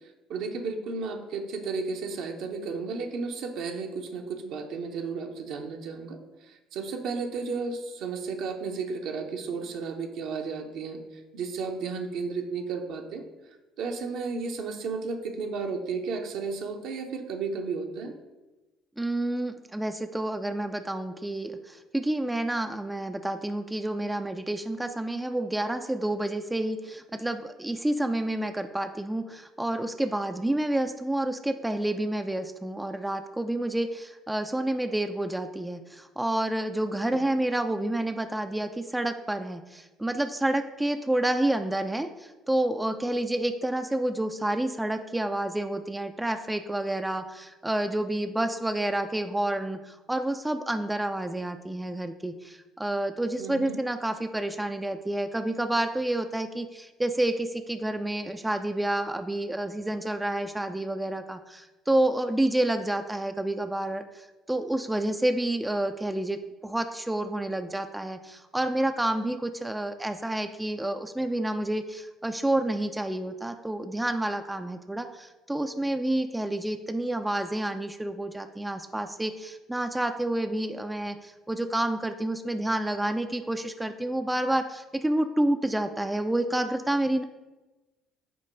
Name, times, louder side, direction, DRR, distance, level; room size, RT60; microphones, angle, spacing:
voice 1, 0.3-11.0 11.3-13.2 13.8-18.1 53.4-53.8, right 4 dB, 60° right, 3 dB, 0.9 m, -33 dB
voice 2, 19.0-87.2, right 1 dB, 10° right, 7 dB, 0.5 m, -29 dB
8.6 x 2.9 x 5.2 m, 1.1 s
figure-of-eight pair, 55°, 0 cm